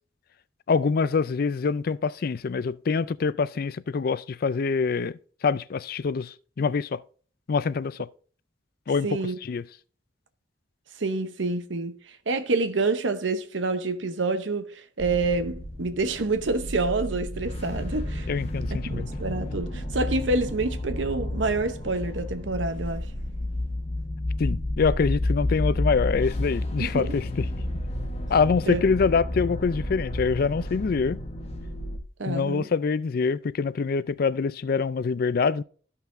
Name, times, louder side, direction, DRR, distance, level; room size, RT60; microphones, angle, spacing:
voice 1, 0.7-5.2 5.4-7.0 7.5-8.1 8.9-9.1 9.4-9.6 18.3-19.1 24.4-27.5 28.3-31.2 32.3-35.6, left 5 dB, 55° left, 0.4 m, -25 dB
voice 2, 9.0-9.4 11.0-12.0 12.3-18.3 18.9-23.1 26.8-27.1 28.7-28.8 32.2-32.7, right 3 dB, 85° right, 0.9 m, -27 dB
sound 1, 15.0-32.0, left 1 dB, 35° left, 1.2 m, -31 dB
14.0 x 5.7 x 2.6 m
head